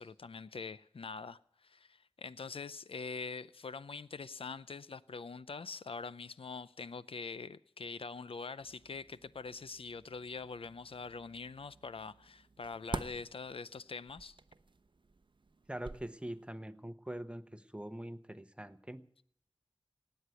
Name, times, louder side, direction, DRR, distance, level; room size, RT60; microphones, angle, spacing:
voice 1, 0.0-14.4, left 4 dB, 85° left, 0.5 m, -44 dB
sound 1, 8.6-16.5, right 3 dB, 60° right, 0.7 m, -49 dB
voice 2, 15.7-19.1, right 1 dB, 10° right, 0.9 m, -43 dB
18.5 x 8.0 x 9.3 m
wide cardioid pair, 45°, 9 cm